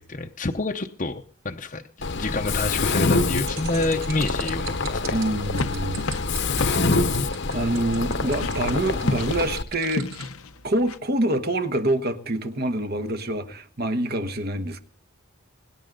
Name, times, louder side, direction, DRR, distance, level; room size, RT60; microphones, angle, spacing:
voice 1, 0.0-1.8 2.1-5.2, left 2 dB, 35° left, 0.8 m, -28 dB
Mechanisms, 2.0-9.6, left 3 dB, 55° left, 1.0 m, -26 dB
sound 1, 3.3-10.3, right 9 dB, 60° right, 5.9 m, -39 dB
voice 2, 5.1-6.0 7.5-10.1 10.6-14.8, right 1 dB, 45° right, 1.3 m, -26 dB
sound 2, 5.5-11.0, left 3 dB, 85° left, 0.9 m, -33 dB
24.0 x 11.0 x 3.9 m
head